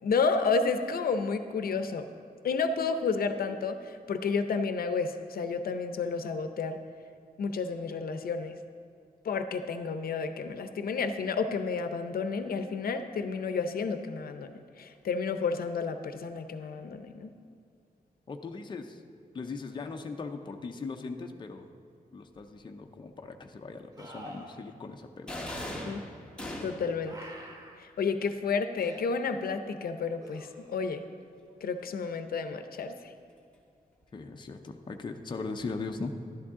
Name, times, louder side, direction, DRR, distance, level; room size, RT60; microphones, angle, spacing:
voice 1, 0.0-2.0 2.4-6.8 7.4-8.6 9.2-17.3 25.8-26.0 26.6-27.3 27.8-31.0 31.6-33.1, left 4 dB, 75° left, 8 dB, 0.6 m, -31 dB
voice 2, 18.3-19.0 19.3-21.6 22.1-25.3 34.1-36.1, left 4 dB, 30° left, 4 dB, 0.6 m, -39 dB
sound 1, 22.4-22.5 24.0-24.6 25.7-26.0 27.0-27.8 28.8-29.0 30.2-30.9 34.0-34.1, equal, 25° right, 1.0 m, -46 dB
sound 2, 25.3-27.0, left 1 dB, 5° left, 1.2 m, -38 dB
11.5 x 11.5 x 3.7 m, 2.5 s
wide cardioid pair, 165°, 15 cm